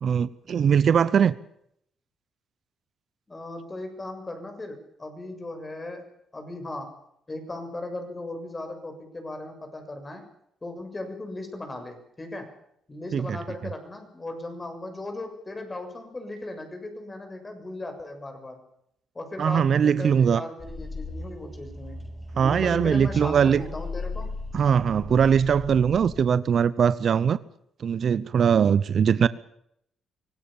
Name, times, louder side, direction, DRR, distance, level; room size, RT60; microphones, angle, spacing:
voice 1, 0.0-1.4 13.1-13.4 19.4-20.4 22.3-23.6 24.5-27.4 27.8-29.3, right 7 dB, 55° right, 0.8 m, -21 dB
voice 2, 3.3-6.9 7.3-10.2 10.6-12.5 12.9-18.6 19.2-22.0 22.4-24.3, left 2 dB, 25° left, 6.8 m, -37 dB
sound 1, 20.6-26.2, left 2 dB, 5° left, 6.5 m, -37 dB
25.0 x 17.5 x 7.3 m
cardioid pair, 90°, 0 cm